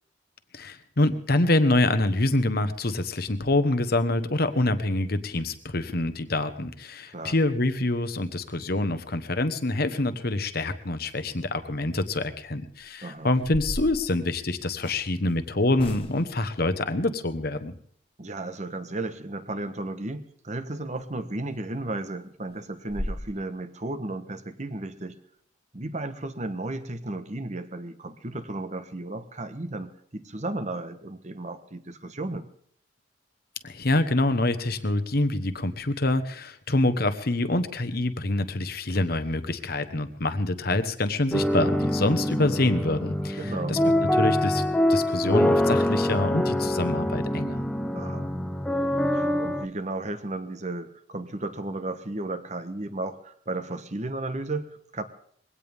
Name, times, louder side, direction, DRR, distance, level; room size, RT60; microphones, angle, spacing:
voice 1, 0.5-17.7 33.6-43.8 44.1-44.6 44.9-47.7, left 2 dB, 55° left, 10 dB, 1.2 m, -26 dB
sound 1, 12.7-12.8 13.3-15.1 15.8-16.4 20.9-21.1 21.5-21.6 22.0-22.1 22.5-22.6 22.9-23.2, left 1 dB, 30° left, 1.2 m, -36 dB
voice 2, 18.2-25.2 25.7-32.5 43.4-43.8 47.9-48.3 49.1-55.0, right 2 dB, 40° right, 10 dB, 1.2 m, -34 dB
sound 2, 41.3-49.7, left 1 dB, 5° left, 0.9 m, -25 dB
21.5 x 17.0 x 3.6 m, 0.62 s
head